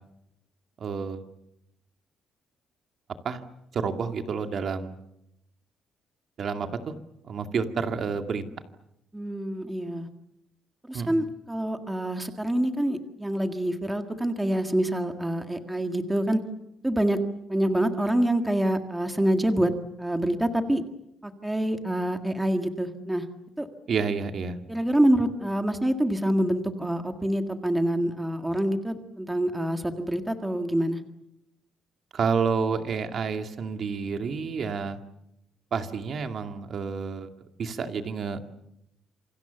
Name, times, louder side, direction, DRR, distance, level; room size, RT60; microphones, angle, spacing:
voice 1, 0.8-1.2 3.2-3.4 3.7-5.0 6.4-6.9 7.3-8.4 10.9-11.2 23.9-24.6 32.1-35.0 35.7-37.3 37.6-38.4, right 5 dB, 40° right, 6 dB, 2.3 m, -29 dB
voice 2, 9.1-10.1 10.9-16.4 16.8-17.2 17.5-19.7 20.0-20.8 21.2-23.3 23.6-23.7 24.7-31.0, right 1 dB, 5° right, 6 dB, 1.8 m, -26 dB
28.0 x 25.5 x 7.1 m, 0.82 s
cardioid pair, 170°, 0 cm